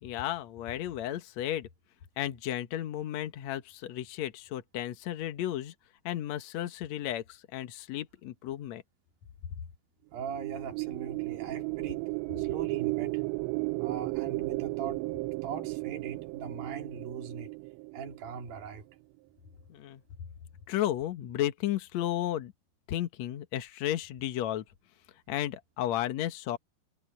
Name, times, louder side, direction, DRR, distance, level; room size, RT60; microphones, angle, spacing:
voice 1, 0.0-1.7 2.2-5.7 6.0-8.8 19.7-20.0 20.7-22.5 22.9-24.6 25.3-26.6, left 12 dB, 85° left, 1.5 m, -33 dB
voice 2, 10.1-12.1 12.4-13.2 13.8-15.0 15.4-17.5 17.9-18.9, right 7 dB, 55° right, 4.6 m, -40 dB
sound 1, 10.1-18.6, right 26 dB, 85° right, 2.8 m, -34 dB
omnidirectional pair, 5.0 m